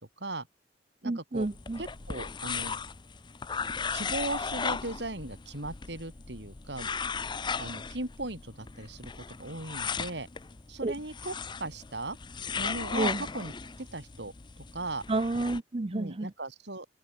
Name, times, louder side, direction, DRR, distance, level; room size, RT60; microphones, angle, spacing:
voice 1, 0.2-0.5 1.0-1.5 1.8-2.8 3.9-6.9 7.6-10.3 10.7-12.2 12.5-13.5 13.8-14.3 14.7-15.0 15.9-16.9, right 2 dB, 75° right, 5.3 m, -38 dB
voice 2, 1.0-1.8 10.8-10.9 12.9-13.2 15.1-16.3, right 2 dB, 30° right, 0.5 m, -30 dB
sound 1, 1.4-15.6, left 5 dB, 25° left, 0.6 m, -37 dB
head